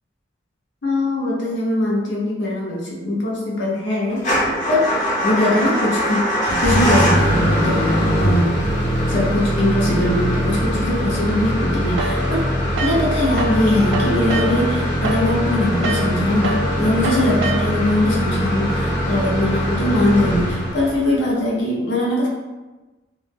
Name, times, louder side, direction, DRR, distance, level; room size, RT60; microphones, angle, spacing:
voice 1, 0.8-4.4 4.7-4.9 5.2-6.2 6.5-8.6 9.1-12.4 12.8-22.3, left 1 dB, 80° left, -3 dB, 0.6 m, -21 dB
Motor vehicle (road) / Engine starting / Idling, 4.2-21.1, equal, 40° left, 0.7 m, -21 dB
sound 1, 12.0-13.6 13.9-18.0, right 3 dB, 85° right, 0.3 m, -27 dB
2.2 x 2.1 x 3.3 m, 1.2 s
head